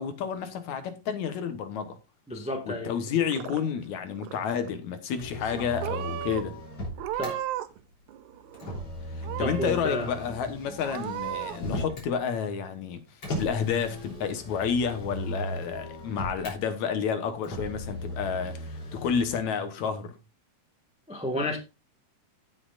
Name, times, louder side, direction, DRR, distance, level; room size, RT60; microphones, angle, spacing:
voice 1, 0.0-2.0 2.6-6.5 9.2-13.0 13.4-20.2, left 7 dB, 70° left, 2.4 m, -30 dB
voice 2, 2.3-2.9 5.5-5.6 7.2-7.4 9.4-10.3 21.1-21.6, left 1 dB, 5° right, 0.7 m, -31 dB
Purr / Meow, 3.0-3.9 4.2-4.7 5.4-5.5 5.8-6.4 6.9-7.8 8.1-8.8 9.2-9.8 10.3-10.4 10.8-11.6, right 13 dB, 75° right, 2.0 m, -35 dB
Motor vehicle (road), 5.1-7.3 8.5-12.1 13.2-16.6 17.4-19.4, equal, 45° left, 4.2 m, -37 dB
16.5 x 6.5 x 2.5 m
omnidirectional pair, 3.7 m